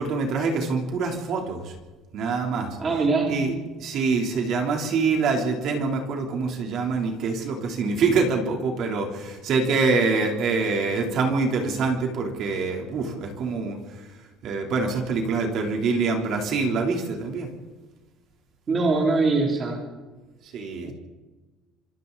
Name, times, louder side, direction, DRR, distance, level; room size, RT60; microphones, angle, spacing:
voice 1, 0.0-1.7 2.1-2.8 3.3-3.5 3.8-14.1 14.4-17.5 20.5-20.9, right 4 dB, 45° right, 2 dB, 3.5 m, -25 dB
voice 2, 2.8-3.5 18.7-19.8 20.8-20.9, right 3 dB, 25° right, 0 dB, 3.1 m, -22 dB
26.5 x 26.5 x 4.1 m, 1.3 s
cardioid pair, 180°, 0 cm